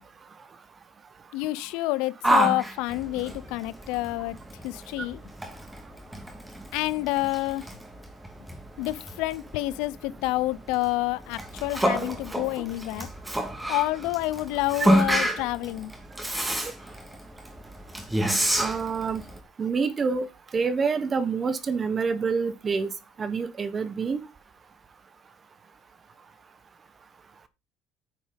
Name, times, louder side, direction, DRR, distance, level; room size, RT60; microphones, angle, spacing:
voice 1, 1.3-4.4 4.6-5.2 6.7-7.6 8.8-13.1 13.7-15.9, left 18 dB, 85° left, 0.7 m, -28 dB
Yell, 2.2-19.4, right 1 dB, 5° right, 2.3 m, -29 dB
voice 2, 18.6-19.3 19.6-20.3 20.5-22.9 23.2-24.2, right 5 dB, 25° right, 1.4 m, -27 dB
9.3 x 7.2 x 5.3 m
cardioid pair, 145°, 0 cm